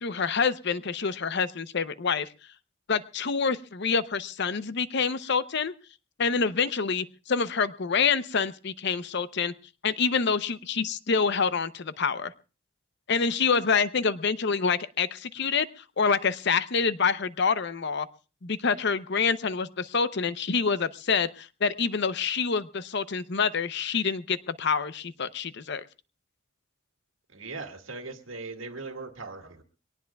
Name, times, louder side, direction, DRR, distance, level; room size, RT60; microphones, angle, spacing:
voice 1, 0.0-2.3 2.9-5.7 6.2-9.5 9.8-12.3 13.1-15.7 16.0-18.1 18.4-25.8, left 5 dB, 60° left, 14 dB, 0.7 m, -27 dB
voice 2, 27.3-29.6, right 3 dB, 80° right, 5 dB, 1.9 m, -39 dB
23.0 x 18.0 x 2.3 m, 0.34 s
head